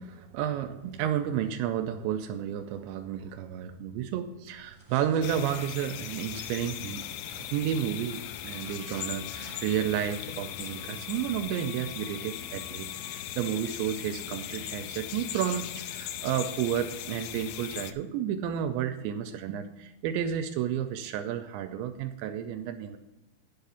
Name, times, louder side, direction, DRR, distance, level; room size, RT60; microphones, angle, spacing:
voice 1, 0.0-7.0 7.4-23.0, right 9 dB, 85° right, 8 dB, 2.7 m, -31 dB
sound 1, 4.5-11.4, right 2 dB, 15° right, 0.9 m, -54 dB
sound 2, 5.2-17.9, left 11 dB, 85° left, 2.6 m, -39 dB
Wind instrument woodwind instrument, 8.5-13.4, left 10 dB, 70° left, 2.9 m, -53 dB
10.5 x 5.7 x 6.9 m, 1.0 s
omnidirectional pair, 5.5 m